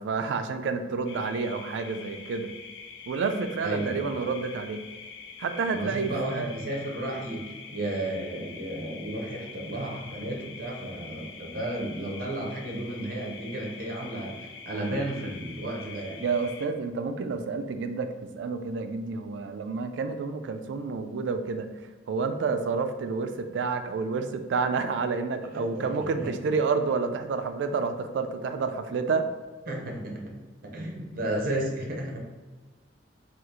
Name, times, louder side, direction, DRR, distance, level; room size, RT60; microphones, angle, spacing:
voice 1, 0.0-2.5 3.1-4.8 5.4-6.6 16.2-21.7 22.1-29.3, right 4 dB, 70° right, 9 dB, 0.3 m, -29 dB
sound 1, 1.1-16.7, left 5 dB, 70° left, 0.3 m, -45 dB
voice 2, 3.6-4.3 5.6-16.2 25.5-26.3 29.7-32.2, right 1 dB, 50° right, 0 dB, 0.7 m, -33 dB
2.9 x 2.4 x 3.6 m, 1.3 s
head